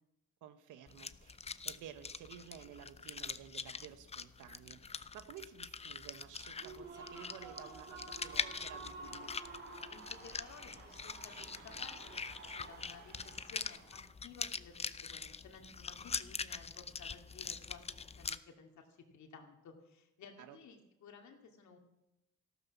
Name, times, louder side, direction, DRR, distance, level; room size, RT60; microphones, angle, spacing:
voice 1, 0.4-9.4 20.4-20.6, right 10 dB, 90° right, 10 dB, 1.3 m, -53 dB
sound 1, 0.9-18.4, left 5 dB, 20° left, 0.5 m, -43 dB
Human voice / Cheering / Applause, 6.4-14.0, right 3 dB, 70° right, 3.3 m, -51 dB
voice 2, 9.9-21.8, left 5 dB, 70° left, 3 dB, 2.5 m, -56 dB
14.0 x 12.5 x 6.0 m, 0.90 s
cardioid pair, 90°, 30 cm